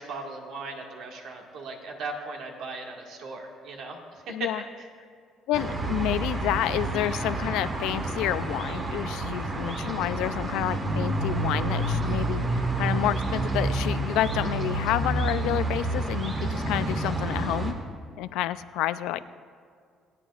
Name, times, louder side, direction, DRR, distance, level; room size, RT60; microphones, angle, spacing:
voice 1, 0.0-4.0 4.4-4.5, right 3 dB, 70° right, 0 dB, 1.9 m, -37 dB
voice 2, 4.3-4.6 5.5-17.8 18.2-19.2, left 13 dB, 85° left, 14 dB, 0.4 m, -29 dB
sound 1, 5.5-17.7, right 2 dB, 35° right, 1.5 m, -29 dB
27.0 x 9.1 x 2.5 m, 2.2 s
cardioid pair, 100°, 0 cm